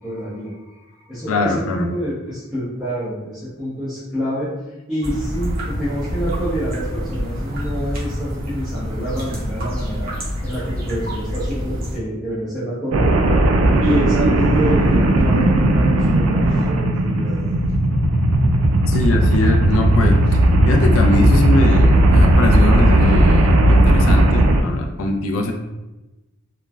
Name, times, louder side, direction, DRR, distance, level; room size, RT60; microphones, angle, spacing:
voice 1, 0.0-4.5 4.9-10.1 10.4-13.3 13.8-17.6, equal, ahead, -12 dB, 0.7 m, -27 dB
voice 2, 1.3-1.9 18.9-20.2 20.7-25.5, left 2 dB, 75° left, 2 dB, 0.4 m, -21 dB
sound 1, 5.0-12.0, equal, 45° right, 0.7 m, -27 dB
sound 2, 12.9-24.6, right 1 dB, 80° right, 0.3 m, -15 dB
3.1 x 2.1 x 2.3 m, 1.0 s
head